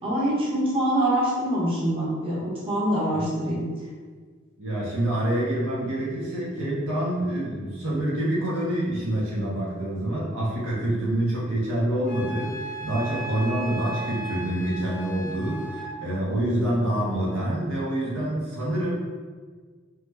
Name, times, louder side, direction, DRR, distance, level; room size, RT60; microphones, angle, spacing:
voice 1, 0.0-3.7, right 1 dB, 25° right, -8 dB, 0.8 m, -25 dB
voice 2, 4.6-18.9, right 1 dB, 70° right, -6 dB, 0.7 m, -27 dB
Wind instrument woodwind instrument, 12.1-15.9, right 3 dB, 35° left, 0.6 m, -36 dB
3.0 x 2.1 x 3.3 m, 1.5 s
head